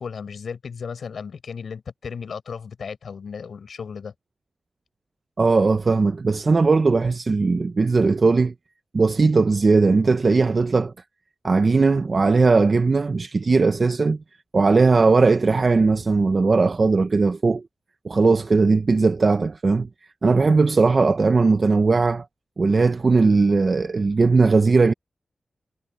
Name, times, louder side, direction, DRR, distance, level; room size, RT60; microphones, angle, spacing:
voice 1, 0.0-4.1, left 6 dB, 85° left, 4.6 m, -35 dB
voice 2, 5.4-8.5 8.9-10.9 11.4-14.2 14.5-17.6 18.0-19.9 20.2-22.3 22.6-24.9, right 4 dB, 40° right, 0.4 m, -18 dB
wide cardioid pair, 170°, 0 cm